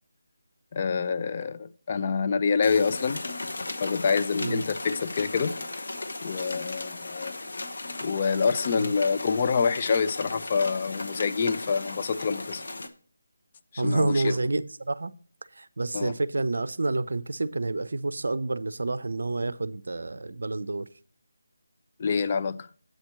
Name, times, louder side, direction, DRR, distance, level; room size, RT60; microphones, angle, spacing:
voice 1, 0.7-3.2 3.8-5.6 6.2-7.3 8.0-12.7 13.7-14.3 15.9-16.1 22.0-22.7, left 5 dB, 35° left, 0.4 m, -26 dB
sound 1, 2.6-12.9, left 2 dB, 60° left, 0.9 m, -36 dB
voice 2, 13.8-15.1 15.6-20.9, right 2 dB, 65° right, 0.5 m, -28 dB
7.9 x 4.3 x 6.1 m
figure-of-eight pair, 160°, 0 cm